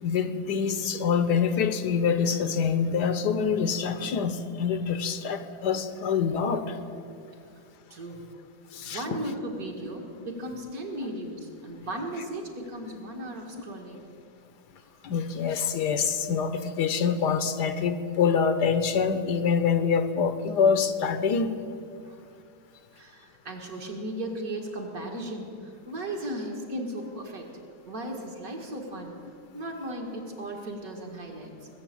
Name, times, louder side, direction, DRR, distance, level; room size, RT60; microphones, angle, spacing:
voice 1, 0.0-6.8 8.7-9.2 15.0-21.5, left 6 dB, 75° left, 9 dB, 1.4 m, -25 dB
voice 2, 7.9-8.2 8.9-14.0 22.0-22.3 22.9-27.5 27.9-29.2 29.5-31.7, right 1 dB, 55° right, 1 dB, 2.3 m, -36 dB
20.0 x 7.3 x 8.5 m, 2.4 s
omnidirectional pair, 1.9 m